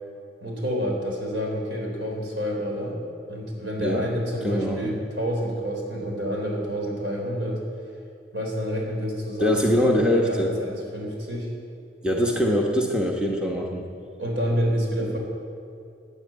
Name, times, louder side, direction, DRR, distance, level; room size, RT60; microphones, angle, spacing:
voice 1, 0.4-3.0 3.3-7.6 8.3-11.5 14.2-15.2, equal, 75° right, -1 dB, 3.5 m, -28 dB
voice 2, 4.4-4.9 9.4-10.5 12.0-13.9, equal, 5° right, 0 dB, 1.0 m, -23 dB
13.0 x 9.5 x 8.3 m, 2.4 s
head